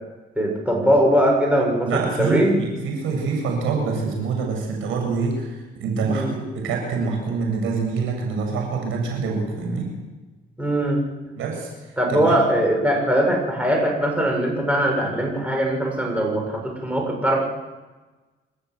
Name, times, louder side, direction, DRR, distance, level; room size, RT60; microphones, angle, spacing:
voice 1, 0.4-2.5 6.0-6.3 10.6-11.0 12.0-17.5, right 1 dB, 5° right, 0 dB, 7.1 m, -21 dB
voice 2, 1.9-9.9 11.4-11.7 12.1-12.4, right 4 dB, 85° right, 1 dB, 7.5 m, -25 dB
27.5 x 13.5 x 8.1 m, 1.2 s
cardioid pair, 90°, 20 cm